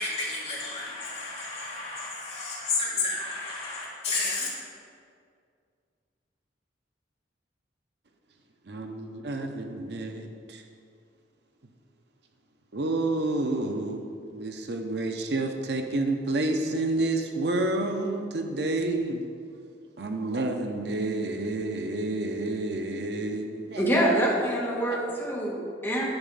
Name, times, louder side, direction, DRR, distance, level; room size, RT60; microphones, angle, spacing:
voice 1, 0.0-4.5, left 3 dB, 35° left, -7 dB, 2.6 m, -31 dB
voice 2, 8.7-10.6 12.7-19.2 20.0-23.8 24.8-25.0, right 2 dB, 65° right, 4 dB, 0.7 m, -29 dB
voice 3, 23.8-26.1, right 1 dB, 15° left, -5 dB, 1.7 m, -25 dB
10.5 x 5.0 x 5.5 m, 2.2 s
head